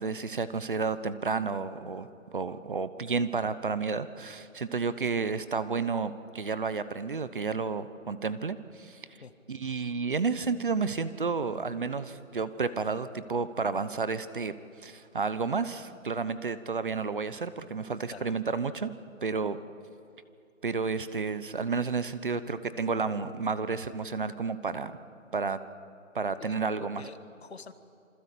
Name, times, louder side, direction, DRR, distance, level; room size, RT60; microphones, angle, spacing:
voice 1, 0.0-9.0 9.5-14.5 14.8-18.9 19.2-19.6 20.6-24.9 25.3-25.6 26.1-27.0, right 4 dB, 40° right, 14 dB, 0.9 m, -31 dB
voice 2, 26.4-27.7, left 5 dB, 55° left, 10 dB, 1.8 m, -47 dB
27.0 x 25.5 x 8.5 m, 2.5 s
hypercardioid pair, 170°, 39 cm